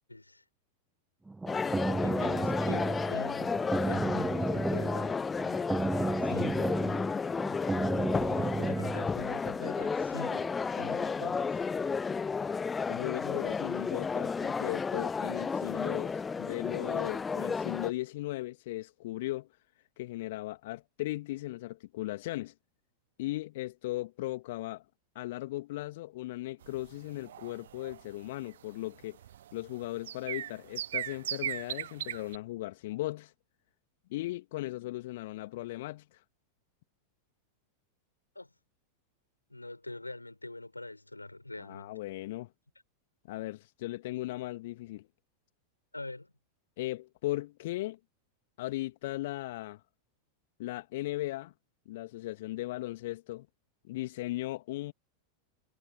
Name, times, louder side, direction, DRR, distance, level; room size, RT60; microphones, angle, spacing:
voice 1, 0.1-0.4 1.9-5.1 6.2-6.8 8.1-11.7 38.4-38.5 39.5-41.9 45.9-46.3, left 2 dB, 85° left, 5.4 m, -44 dB
sound 1, 1.3-9.1, right 3 dB, 10° right, 1.4 m, -33 dB
sound 2, 1.5-17.9, left 5 dB, 15° left, 0.4 m, -32 dB
voice 2, 12.9-19.5 20.0-22.5 23.2-24.8 25.1-29.2 29.5-33.3 34.1-36.0 41.6-42.5 43.3-45.1 46.8-48.0 48.6-49.8 50.6-51.5 51.9-53.5 53.8-54.9, left 17 dB, 55° left, 2.6 m, -37 dB
sound 3, 26.6-32.4, right 11 dB, 60° right, 0.4 m, -39 dB
figure-of-eight pair, 90°, 0 cm